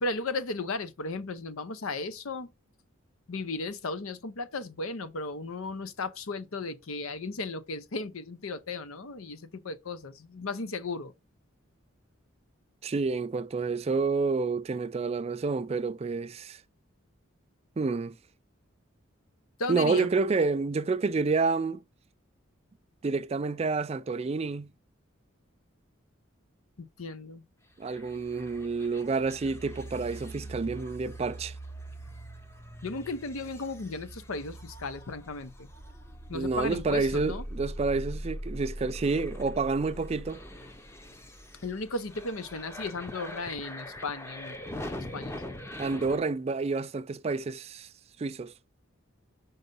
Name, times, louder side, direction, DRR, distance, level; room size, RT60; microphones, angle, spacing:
voice 1, 0.0-2.5 3.3-11.1 19.6-20.1 26.8-27.4 32.8-35.7 36.3-37.4 41.6-44.6 44.9-45.5, left 3 dB, 85° left, 0.7 m, -35 dB
voice 2, 12.8-16.6 17.8-18.1 19.7-21.8 23.0-24.7 27.8-31.5 36.3-40.4 45.8-47.9 48.2-48.5, right 4 dB, 30° right, 0.3 m, -29 dB
sound 1, 27.8-46.2, equal, 10° left, 0.6 m, -42 dB
5.5 x 3.9 x 5.3 m
head